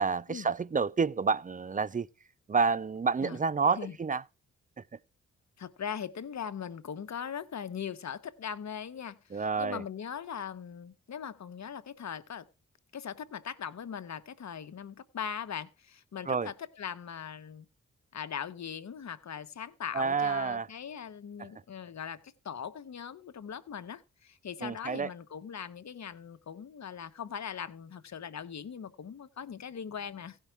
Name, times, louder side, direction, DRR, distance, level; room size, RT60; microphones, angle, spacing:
voice 1, 0.0-2.1 2.5-4.2 4.8-4.9 9.3-9.8 16.3-16.5 19.9-20.7 21.4-21.5 24.6-25.1, right 5 dB, 25° right, 0.5 m, -29 dB
voice 2, 5.6-12.5 12.9-17.7 18.1-30.4, left 8 dB, 60° left, 1.1 m, -40 dB
16.0 x 5.7 x 4.5 m
supercardioid pair, 45°, 32 cm